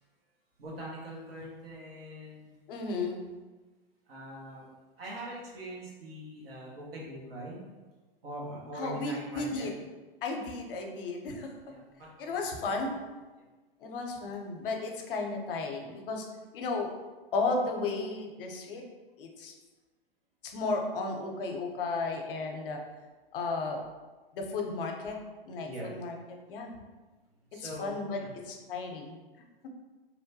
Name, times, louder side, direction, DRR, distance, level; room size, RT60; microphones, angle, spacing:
voice 1, 0.6-2.5 4.1-4.7 5.0-7.6 8.2-9.7 11.6-12.1 13.4-13.5 25.6-25.9 27.5-28.3, right 1 dB, 80° right, -4 dB, 1.0 m, -42 dB
voice 2, 2.7-3.2 8.8-9.7 10.2-11.5 12.2-13.0 13.8-16.3 16.5-16.9 17.3-18.8 19.2-19.5 20.4-22.8 23.3-23.8 24.3-25.2 25.5-25.7 25.9-26.1 26.5-26.7 27.6-28.2 28.5-29.2, left 3 dB, 65° left, 2 dB, 0.6 m, -33 dB
2.9 x 2.2 x 2.6 m, 1.3 s
hypercardioid pair, 110°, 29 cm